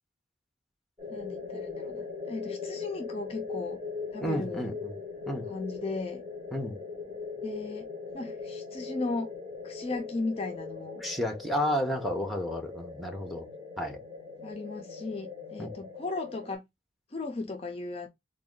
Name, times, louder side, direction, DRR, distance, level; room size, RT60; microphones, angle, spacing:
sound 1, 1.0-16.6, left 4 dB, 20° right, 1.4 m, -40 dB
voice 1, 1.1-3.8 4.1-4.8 5.5-6.2 7.4-9.3 9.6-11.0 14.4-16.7 17.1-18.1, left 3 dB, 30° left, 0.4 m, -36 dB
voice 2, 4.2-4.9 5.3-5.5 6.5-6.8 11.0-13.5 13.8-14.0 15.6-15.7, equal, ahead, 0.7 m, -31 dB
3.7 x 2.2 x 3.7 m
head